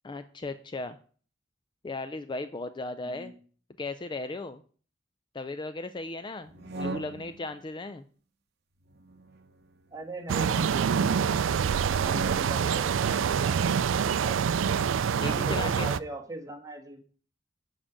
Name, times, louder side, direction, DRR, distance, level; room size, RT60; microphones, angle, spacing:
voice 1, 0.0-1.0 1.8-3.3 3.8-4.6 5.3-8.0 15.2-15.9, left 2 dB, 25° left, 11 dB, 0.4 m, -36 dB
sound 1, 6.5-7.5 8.8-10.5 11.8-12.8, right 3 dB, 60° right, 0.8 m, -40 dB
voice 2, 9.9-11.4 12.0-13.6 14.2-14.6 15.2-17.0, right 2 dB, 20° right, 1 dB, 1.5 m, -41 dB
sound 2, 10.3-16.0, right 7 dB, 85° right, 0.4 m, -26 dB
7.5 x 5.0 x 7.3 m, 0.43 s
head